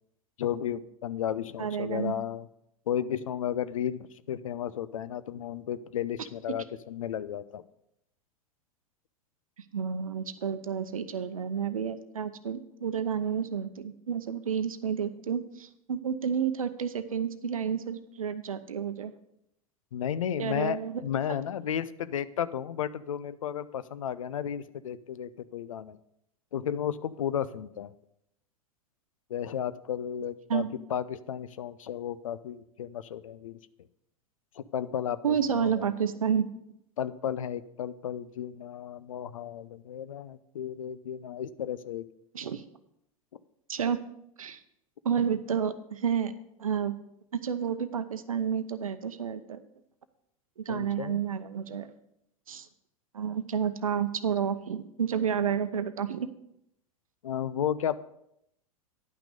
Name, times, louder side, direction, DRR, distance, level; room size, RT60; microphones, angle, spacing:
voice 1, 0.4-2.5 2.9-7.6 19.9-26.0 26.5-27.9 29.3-33.6 34.5-35.9 37.0-42.1 45.2-45.3 50.7-51.2 57.2-58.0, left 9 dB, 65° left, 15 dB, 0.5 m, -33 dB
voice 2, 1.6-2.1 9.7-19.1 20.4-21.0 30.5-30.7 35.2-36.5 42.3-42.6 43.7-44.0 44.4-44.6 45.0-46.3 46.6-47.0 47.3-49.6 50.6-51.9 52.5-52.7 53.1-56.3, right 7 dB, 70° right, 12 dB, 0.7 m, -30 dB
10.5 x 5.9 x 5.1 m, 0.78 s
figure-of-eight pair, 90°, 18 cm